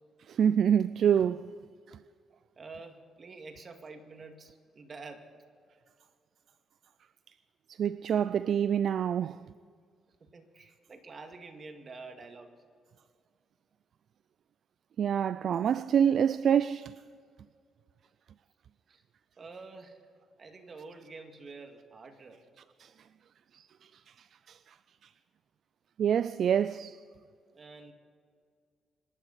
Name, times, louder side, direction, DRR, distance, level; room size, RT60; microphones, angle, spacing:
voice 1, 0.3-1.5 7.7-9.5 15.0-17.0 22.8-22.9 23.5-23.7 24.2-24.6 26.0-27.0, right 8 dB, 60° right, 0.3 m, -26 dB
voice 2, 2.6-5.3 10.2-12.5 18.9-19.0 19.4-20.0 20.4-22.4 27.5-27.9, right 3 dB, 40° right, 2.1 m, -48 dB
26.0 x 12.0 x 4.2 m
cardioid pair, 90°, 0 cm